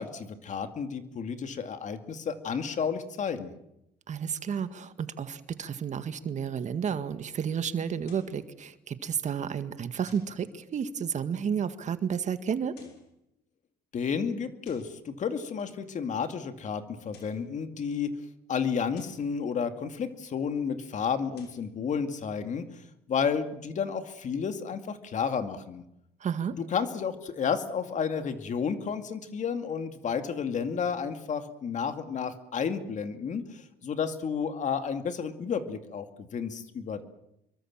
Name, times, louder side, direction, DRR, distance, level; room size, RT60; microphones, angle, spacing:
voice 1, 0.0-3.5 13.9-18.1 18.5-22.7 23.1-25.8 26.5-37.0, left 6 dB, 45° left, 8 dB, 2.4 m, -31 dB
voice 2, 4.1-12.7 26.2-26.5, right 7 dB, 45° right, 10 dB, 1.9 m, -31 dB
sound 1, 8.0-8.4 10.1-10.4 12.6-13.1 14.6-15.0 16.9-17.5 18.9-19.3 21.2-21.7, left 5 dB, 80° left, 6.5 m, -56 dB
26.5 x 23.0 x 7.5 m, 0.83 s
cardioid pair, 110°, 17 cm